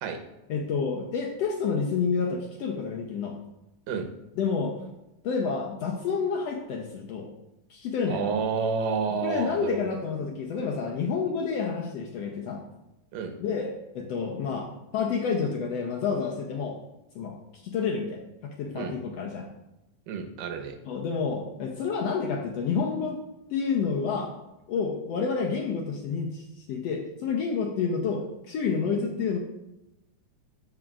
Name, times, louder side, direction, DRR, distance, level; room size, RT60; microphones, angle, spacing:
voice 1, 0.5-3.4 4.4-4.8 5.2-7.3 7.7-8.3 9.2-12.6 13.4-16.8 17.1-17.3 17.6-18.2 18.6-19.5 20.8-23.2 23.5-24.3 24.7-29.4, left 5 dB, 75° left, 1 dB, 1.5 m, -29 dB
voice 2, 8.1-9.8 13.1-13.3 18.7-18.9 20.1-20.8, right 5 dB, 80° right, 5 dB, 2.5 m, -29 dB
14.0 x 5.1 x 2.4 m, 0.92 s
omnidirectional pair, 3.8 m